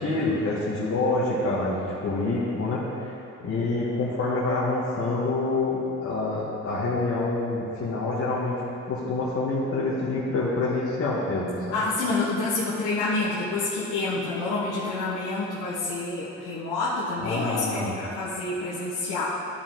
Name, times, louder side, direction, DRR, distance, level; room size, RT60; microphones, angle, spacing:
voice 1, 0.0-3.1 3.4-11.8 17.2-18.0, left 2 dB, 50° left, -7 dB, 1.7 m, -27 dB
voice 2, 11.7-19.3, left 3 dB, 90° left, -9 dB, 1.4 m, -28 dB
13.5 x 4.9 x 3.9 m, 3.0 s
cardioid pair, 90°, 30 cm